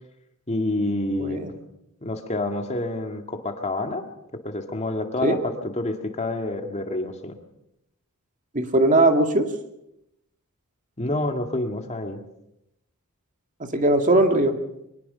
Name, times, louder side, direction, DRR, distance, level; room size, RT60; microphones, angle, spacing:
voice 1, 0.5-1.4 2.0-4.0 4.4-7.4 11.0-12.2, left 2 dB, 30° left, 5 dB, 2.0 m, -28 dB
voice 2, 8.5-9.5 13.7-14.6, right 2 dB, 35° right, 5 dB, 2.1 m, -19 dB
23.5 x 20.5 x 5.6 m, 0.83 s
head